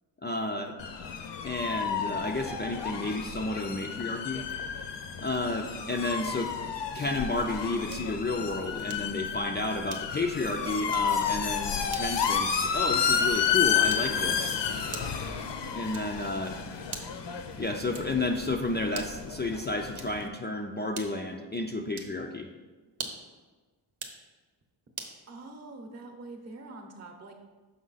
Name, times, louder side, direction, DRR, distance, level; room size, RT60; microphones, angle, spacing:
voice 1, 0.2-0.8 1.4-4.4 5.2-6.5 6.9-14.6 15.7-16.9 17.6-22.5, left 2 dB, 25° left, 3 dB, 0.4 m, -31 dB
sound 1, 0.8-20.3, left 7 dB, 65° left, 0.7 m, -31 dB
sound 2, 7.9-8.2 8.9-9.2 9.9-10.3 10.9-11.2 11.9-12.2 12.9-13.2 13.9-14.3 14.9-15.3 15.9-16.3 16.9-17.3 17.9-18.3 18.9-19.3 19.9-20.3 20.9-21.3 21.9-22.2 22.9-23.3 23.9-24.2 25.0-25.2, right 5 dB, 90° right, 0.9 m, -43 dB
voice 2, 25.3-27.5, right 2 dB, 35° right, 4 dB, 0.8 m, -45 dB
6.4 x 5.4 x 4.0 m, 1.3 s
wide cardioid pair, 130°, 47 cm